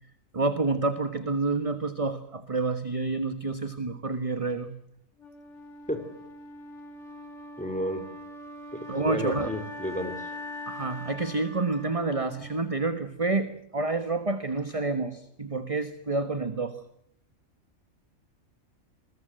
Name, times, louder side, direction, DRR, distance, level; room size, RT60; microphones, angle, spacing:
voice 1, 0.3-4.7 8.9-9.5 10.7-16.8, right 3 dB, 25° right, 10 dB, 1.4 m, -29 dB
Wind instrument woodwind instrument, 5.2-13.2, left 1 dB, 55° left, 4.0 m, -42 dB
voice 2, 7.6-8.0 8.7-10.3, equal, 5° left, 7 dB, 4.3 m, -32 dB
28.5 x 21.5 x 7.8 m, 0.69 s
omnidirectional pair, 1.5 m